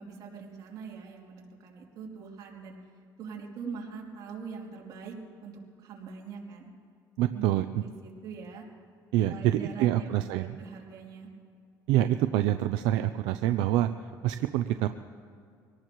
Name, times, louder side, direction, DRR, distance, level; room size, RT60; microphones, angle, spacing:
voice 1, 0.0-2.8 3.2-5.1 5.4-6.7 7.3-7.9 8.2-8.6 9.2-11.3, right 5 dB, 55° right, -2 dB, 3.1 m, -42 dB
voice 2, 7.2-7.8 9.1-10.6 11.9-13.9 14.2-14.9, right 13 dB, 90° right, 9 dB, 0.5 m, -26 dB
24.0 x 18.0 x 3.1 m, 2.3 s
cardioid pair, 125°, 8 cm